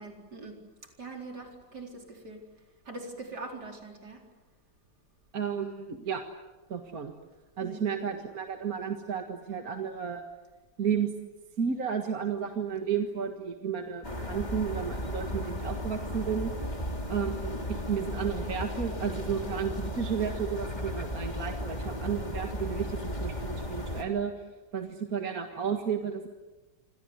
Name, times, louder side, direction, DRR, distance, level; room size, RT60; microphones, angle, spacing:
voice 1, 0.0-2.4 2.8-4.2 7.6-7.8, right 3 dB, 80° right, 2 dB, 4.8 m, -43 dB
voice 2, 5.3-6.2 6.7-7.1 7.6-10.2 10.8-11.1 11.6-16.5 17.1-24.3 24.7-26.3, right 7 dB, 60° right, 4 dB, 2.2 m, -32 dB
sound 1, 14.0-24.0, left 1 dB, 25° left, 3.3 m, -35 dB
28.0 x 25.5 x 8.1 m, 1.1 s
omnidirectional pair, 1.7 m